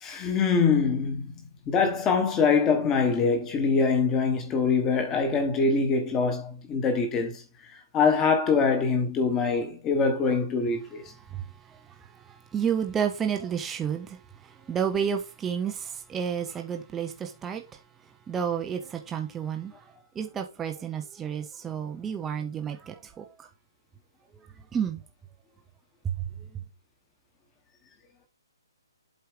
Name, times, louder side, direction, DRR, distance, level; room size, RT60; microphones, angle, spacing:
voice 1, 0.0-7.4 7.9-11.0, left 5 dB, 10° left, 1.1 m, -24 dB
voice 2, 12.3-14.2 14.6-17.6 18.3-19.7 20.2-23.5 24.3-24.5 24.7-25.0 26.0-26.5, right 8 dB, 5° right, 0.5 m, -31 dB
8.1 x 4.6 x 4.9 m
hypercardioid pair, 175°, 2 cm